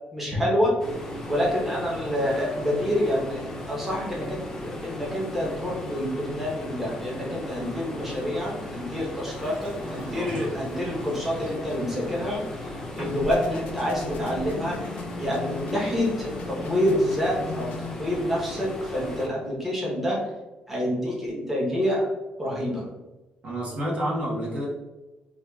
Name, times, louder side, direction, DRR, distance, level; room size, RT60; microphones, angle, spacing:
voice 1, 0.1-0.7 1.3-12.7 13.0-14.8 15.2-17.7 18.0-20.2 20.7-22.1 22.4-22.9, equal, 10° right, -5 dB, 0.9 m, -27 dB
sound 1, 0.8-19.3, left 1 dB, 15° left, 0.5 m, -37 dB
Water tap faucet / Sink (filling or washing) / Bathtub (filling or washing), 9.2-14.7, equal, 30° right, 1.2 m, -43 dB
sound 2, 13.0-17.9, left 5 dB, 75° left, 0.5 m, -38 dB
voice 2, 23.4-24.7, equal, 45° right, -4 dB, 0.9 m, -29 dB
4.4 x 2.3 x 2.3 m, 1.1 s
cardioid pair, 150°, 3 cm